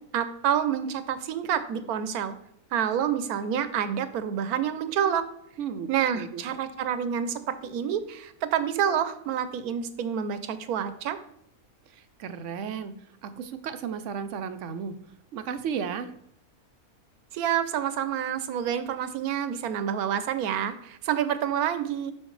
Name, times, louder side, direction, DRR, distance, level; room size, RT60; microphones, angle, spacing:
voice 1, 0.1-2.3 2.7-5.3 5.9-11.2 17.3-22.1, right 9 dB, 80° right, 11 dB, 1.1 m, -28 dB
voice 2, 5.6-6.6 11.9-15.0 15.3-16.1, right 7 dB, 65° right, 10 dB, 0.8 m, -34 dB
6.5 x 6.4 x 3.1 m, 0.75 s
omnidirectional pair, 1.5 m